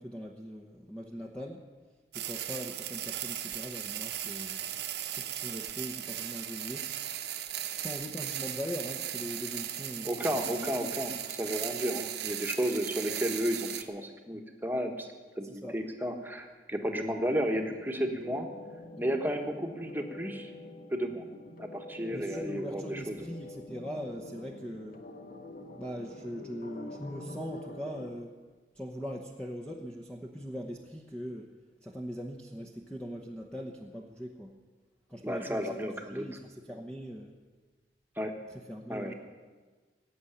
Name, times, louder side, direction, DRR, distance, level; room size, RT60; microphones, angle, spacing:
voice 1, 0.0-1.6 2.1-4.8 5.1-6.9 7.7-10.9 15.4-15.8 22.1-25.0 25.7-28.3 28.7-31.5 31.8-34.6 35.1-37.3 38.5-39.1, equal, 5° left, 0 dB, 0.9 m, -41 dB
sound 1, 2.1-13.8, right 11 dB, 60° right, 1.1 m, -37 dB
voice 2, 10.0-15.1 15.4-18.5 19.0-20.5 20.9-21.2 21.6-23.1 35.2-36.2 38.2-38.3 38.9-39.1, equal, 10° right, 4 dB, 1.3 m, -33 dB
sound 2, 17.7-28.1, left 2 dB, 50° left, 1.4 m, -46 dB
17.5 x 8.0 x 10.0 m, 1.4 s
head